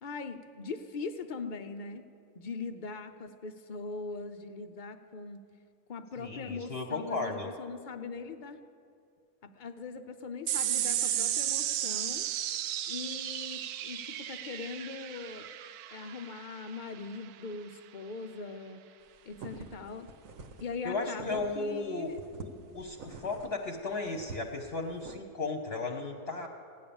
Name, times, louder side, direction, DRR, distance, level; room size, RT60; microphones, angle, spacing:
voice 1, 0.0-2.0 2.4-5.4 5.9-8.6 9.4-12.3 12.8-15.5 15.9-18.8 19.3-20.1 20.6-22.2, left 4 dB, 65° left, 8 dB, 0.4 m, -41 dB
voice 2, 6.2-7.5 20.8-26.5, left 3 dB, 45° left, 2 dB, 1.0 m, -35 dB
sound 1, 10.5-17.3, right 11 dB, 80° right, 1.1 m, -34 dB
sound 2, 19.1-21.8 22.1-25.2, right 4 dB, 65° right, 1.3 m, -47 dB
16.5 x 10.0 x 7.0 m, 2.4 s
omnidirectional pair, 1.6 m